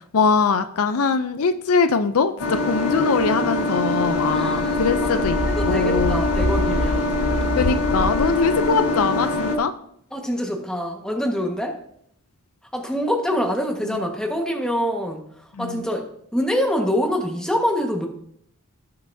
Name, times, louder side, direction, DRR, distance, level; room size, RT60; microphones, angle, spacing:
voice 1, 0.1-5.4 5.7-6.2 7.6-9.7 13.8-14.0 15.5-15.8, left 4 dB, 70° left, 10 dB, 0.5 m, -22 dB
sound 1, 2.4-9.6, left 2 dB, 85° left, 1.3 m, -23 dB
voice 2, 4.3-4.8 5.3-7.2 10.1-11.7 12.7-15.2 15.6-16.0 16.3-18.1, equal, 5° left, 1 dB, 1.5 m, -25 dB
17.0 x 6.7 x 2.7 m, 0.69 s
head